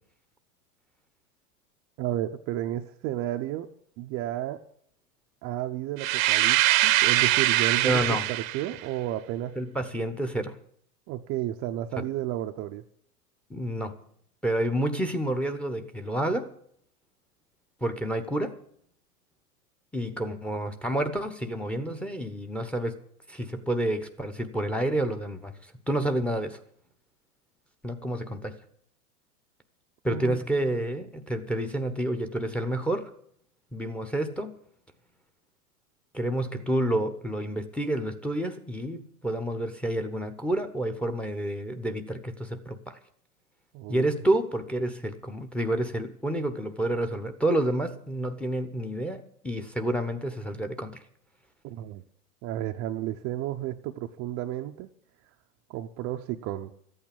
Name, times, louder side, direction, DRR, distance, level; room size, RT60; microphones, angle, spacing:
voice 1, 2.0-3.7 4.0-4.6 5.4-8.2 8.5-9.5 11.1-12.8 30.1-30.4 43.7-44.0 51.6-52.0 52.4-54.9 55.7-56.7, right 13 dB, 30° right, 4 dB, 0.7 m, -32 dB
sound 1, 6.0-8.8, right 15 dB, 60° right, 0.9 m, -23 dB
voice 2, 7.8-8.2 9.6-10.5 13.5-14.0 14.4-16.5 17.8-18.6 19.9-23.0 23.3-26.6 27.8-28.6 30.0-33.1 33.7-34.6 36.1-43.0 43.9-51.0, right 1 dB, 5° left, 8 dB, 1.0 m, -29 dB
13.5 x 8.8 x 8.5 m, 0.65 s
hypercardioid pair, 120°, 46 cm